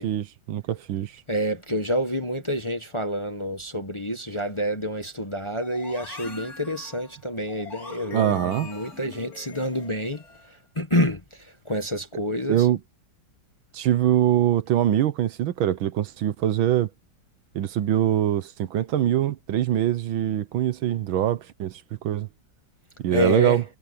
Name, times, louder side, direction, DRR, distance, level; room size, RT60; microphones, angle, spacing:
voice 1, 0.0-1.2 8.1-8.7 12.5-12.8 13.7-16.9 17.6-22.3 23.0-23.6, right 11 dB, 75° right, 1.7 m, -23 dB
voice 2, 1.3-10.2 10.8-12.7 23.1-23.6, equal, 15° left, 1.1 m, -28 dB
sound 1, 5.6-10.5, left 4 dB, 45° left, 5.4 m, -42 dB
omnidirectional pair, 2.3 m